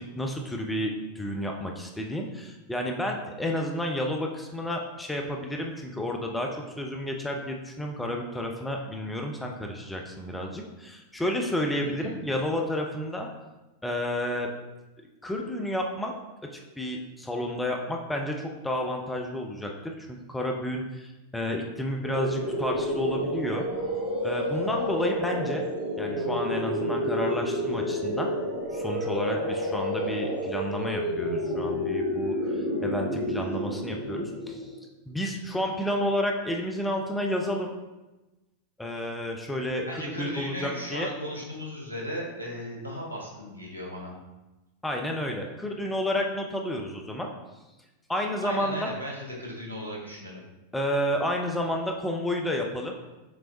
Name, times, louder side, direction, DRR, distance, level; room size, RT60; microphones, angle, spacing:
voice 1, 0.0-13.3 13.8-14.5 15.2-16.1 16.5-23.7 24.2-25.6 26.0-28.3 28.7-34.7 35.1-37.7 38.8-41.1 44.8-47.3 48.1-48.9 50.7-52.9, left 1 dB, 5° left, 1 dB, 0.5 m, -31 dB
sound 1, 22.0-34.8, equal, 70° right, 1.0 m, -30 dB
voice 2, 39.8-44.2 48.4-50.4, equal, 90° left, -2 dB, 1.1 m, -36 dB
6.1 x 3.4 x 2.6 m, 1.1 s
figure-of-eight pair, 90°, 0 cm